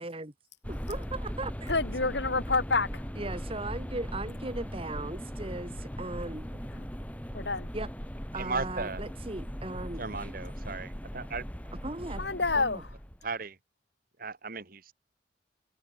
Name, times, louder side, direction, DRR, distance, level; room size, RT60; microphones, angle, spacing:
voice 1, 0.0-0.3 0.7-1.7 3.2-6.9 7.7-7.9 8.3-10.0 11.7-12.2 12.6-12.8, right 2 dB, 30° right, 1.9 m, -38 dB
sound 1, 0.6-13.3, equal, 10° left, 6.4 m, -39 dB
voice 2, 1.7-2.9 7.3-7.7 12.1-13.0, left 3 dB, 65° left, 2.6 m, -28 dB
voice 3, 8.4-9.0 10.0-11.4 13.2-13.5 14.2-14.9, right 4 dB, 50° right, 2.1 m, -36 dB
open air
head